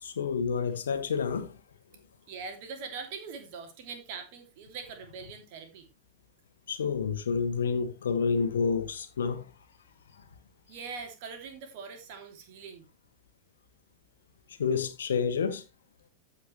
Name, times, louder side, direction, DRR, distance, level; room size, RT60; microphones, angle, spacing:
voice 1, 0.0-1.6 6.7-9.5 14.6-15.6, left 5 dB, 65° left, 1.7 m, -29 dB
voice 2, 2.3-5.9 10.7-12.9, right 5 dB, 50° right, 3.2 m, -42 dB
15.0 x 5.8 x 3.3 m
figure-of-eight pair, 90°, 0 cm